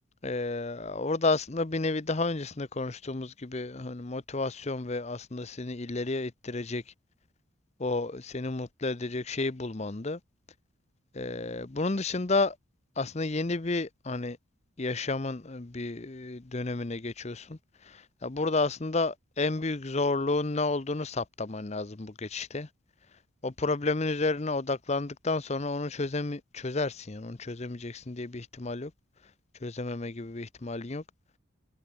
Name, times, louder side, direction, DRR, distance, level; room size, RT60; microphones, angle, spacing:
voice 1, 0.2-6.8 7.8-10.2 11.1-12.6 13.0-14.4 14.8-22.7 23.4-28.9 29.6-31.0, left 3 dB, 30° left, 0.7 m, -31 dB
head